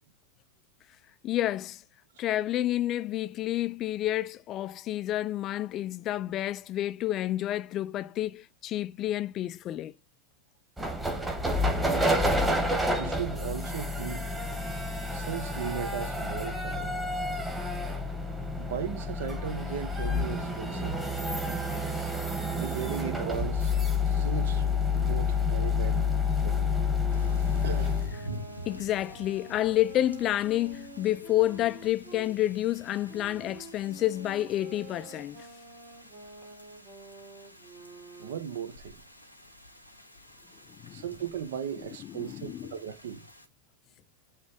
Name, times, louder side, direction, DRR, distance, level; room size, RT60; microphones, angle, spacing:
voice 1, 1.2-1.8 2.2-9.9 28.7-35.5 40.8-41.0 42.0-42.8, left 13 dB, 35° left, 0.4 m, -29 dB
sound 1, 10.8-28.1, left 3 dB, 10° right, 1.6 m, -29 dB
voice 2, 12.9-14.3 15.1-17.0 18.6-21.0 22.5-23.7 24.1-24.7 24.9-26.1 26.3-26.7 27.6-27.9 38.2-39.0 40.9-43.3, right 8 dB, 55° right, 1.1 m, -37 dB
Wind instrument woodwind instrument, 26.5-32.3 33.1-38.5, right 4 dB, 25° right, 3.1 m, -48 dB
sound 2, 27.1-43.5, right 1 dB, 90° right, 1.7 m, -48 dB
9.3 x 3.3 x 5.1 m
figure-of-eight pair, 90°, 0 cm